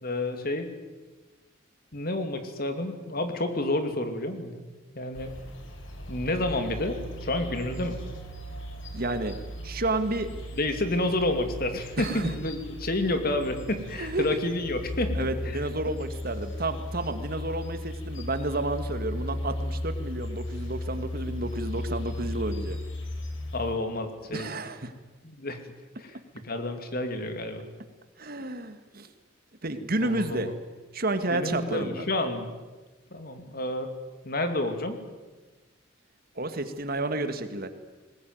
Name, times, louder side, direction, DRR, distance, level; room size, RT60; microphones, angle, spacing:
voice 1, 0.0-0.7 1.9-4.7 4.9-5.3 6.1-8.0 10.5-15.3 23.5-24.5 25.2-25.7 26.0-27.7 30.0-30.5 31.3-32.5 33.1-33.9 34.2-35.0, left 2 dB, 50° left, 7 dB, 2.7 m, -30 dB
sound 1, 5.1-23.7, left 1 dB, 75° left, 3.8 m, -36 dB
voice 2, 8.9-9.4 9.6-10.3 12.0-12.3 14.0-14.4 15.2-22.8 24.3-24.9 28.2-29.1 29.6-30.5 30.9-32.1 36.4-37.7, right 2 dB, 50° right, 9 dB, 1.8 m, -31 dB
20.5 x 20.0 x 9.4 m, 1.2 s
head